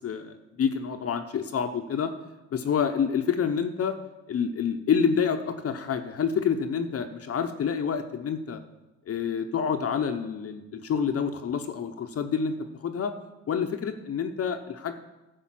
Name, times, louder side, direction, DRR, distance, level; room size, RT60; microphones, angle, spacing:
voice 1, 0.0-2.1 2.5-4.0 4.3-8.6 9.1-12.5 12.8-13.1 13.5-14.9, left 7 dB, 50° left, 5 dB, 0.8 m, -28 dB
11.5 x 5.1 x 7.5 m, 1.0 s
cardioid pair, 90°, 30 cm